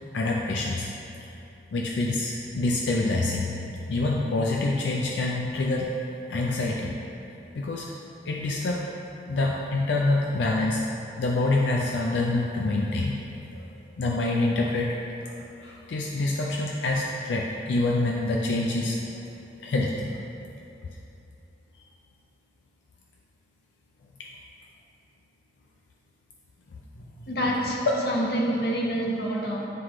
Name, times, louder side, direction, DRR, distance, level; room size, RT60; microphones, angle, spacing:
voice 1, 0.1-0.9 1.7-3.5 3.9-6.0 6.3-6.9 7.6-7.9 8.3-8.8 9.3-10.8 11.2-13.2 13.5-13.6 14.0-15.0 15.3-19.0 19.6-20.1 24.2-24.3 27.9-28.0, left 2 dB, 85° left, -1 dB, 0.4 m, -26 dB
voice 2, 26.9-29.7, equal, 60° left, -2 dB, 0.9 m, -28 dB
9.2 x 3.1 x 3.7 m, 2.8 s
head